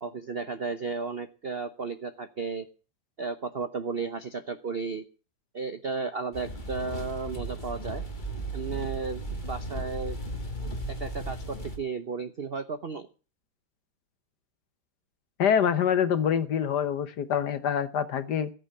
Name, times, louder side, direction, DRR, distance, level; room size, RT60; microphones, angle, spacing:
voice 1, 0.0-2.7 3.2-5.0 5.5-8.0 8.5-10.2 10.9-13.1, right 4 dB, 70° right, 10 dB, 0.5 m, -34 dB
sound 1, 6.3-11.8, right 2 dB, 25° left, 1.9 m, -35 dB
voice 2, 15.4-18.5, left 8 dB, 60° left, 13 dB, 1.4 m, -25 dB
14.5 x 9.0 x 7.8 m, 0.36 s
omnidirectional pair, 2.3 m